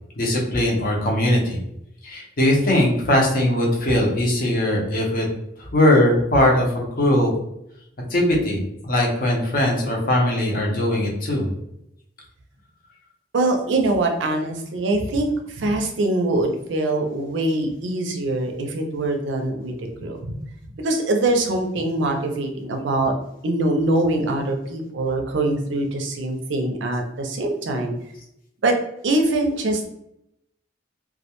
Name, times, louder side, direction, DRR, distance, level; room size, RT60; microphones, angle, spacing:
voice 1, 0.2-1.6 2.0-5.2 5.6-7.3 8.1-11.5, left 1 dB, 50° left, -1 dB, 0.7 m, -20 dB
voice 2, 13.3-19.7 20.0-20.4 20.8-23.1 23.4-27.9 28.6-28.7 29.0-29.9, right 2 dB, 75° right, 3 dB, 0.5 m, -23 dB
2.2 x 2.1 x 2.8 m, 0.80 s
head